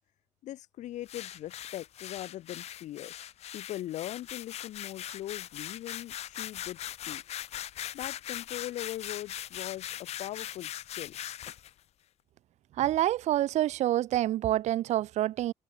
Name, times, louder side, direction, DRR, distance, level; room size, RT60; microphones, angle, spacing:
voice 1, 0.4-3.1 3.5-7.2 7.9-11.2, left 14 dB, 80° left, 5.3 m, -40 dB
sound 1, 1.1-11.7, left 11 dB, 60° left, 4.0 m, -40 dB
voice 2, 12.8-15.5, right 13 dB, 70° right, 1.1 m, -27 dB
cardioid pair, 170°, 12 cm